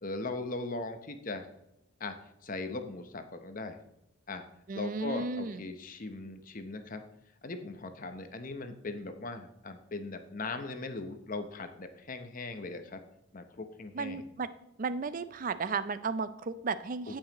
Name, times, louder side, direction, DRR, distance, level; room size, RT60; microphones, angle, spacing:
voice 1, 0.0-1.5 2.0-2.1 2.4-3.8 4.3-4.4 4.7-7.0 7.4-13.0 13.3-14.3 17.1-17.2, left 3 dB, 40° left, 8 dB, 0.8 m, -39 dB
voice 2, 4.7-5.6 13.9-14.5 14.8-17.2, right 4 dB, 40° right, 13 dB, 0.4 m, -34 dB
15.5 x 5.5 x 3.0 m, 0.83 s
head